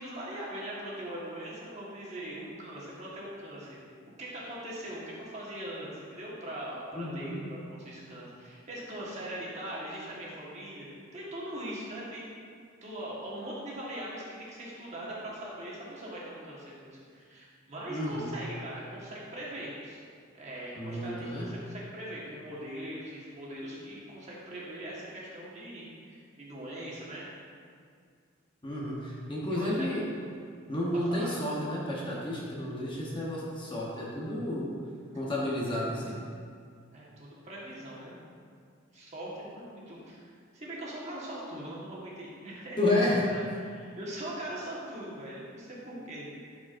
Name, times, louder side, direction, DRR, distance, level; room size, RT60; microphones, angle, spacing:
voice 1, 0.0-3.8 4.2-12.2 12.8-20.0 20.4-27.3 29.5-29.9 30.9-31.3 36.9-38.2 38.9-46.6, right 1 dB, 35° right, -6 dB, 1.4 m, -41 dB
voice 2, 6.9-7.4 17.9-18.3 20.8-21.5 28.6-30.0 30.7-34.7 35.1-36.2 42.8-43.2, left 1 dB, 25° left, -5 dB, 1.0 m, -31 dB
11.5 x 4.8 x 2.6 m, 2.1 s
head